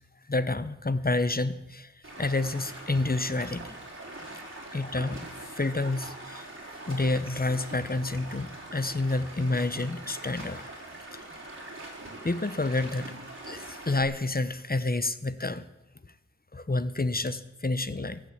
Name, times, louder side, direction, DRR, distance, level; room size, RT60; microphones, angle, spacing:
voice 1, 0.3-1.9 2.2-3.8 4.7-6.5 6.9-10.8 11.1-11.2 12.2-13.2 13.5-15.6 16.5-18.2, left 2 dB, 30° left, 13 dB, 1.0 m, -29 dB
Stream, 2.0-14.0, right 2 dB, 45° right, 4.5 m, -43 dB
15.0 x 10.0 x 8.6 m, 0.94 s
wide cardioid pair, 40°, 29 cm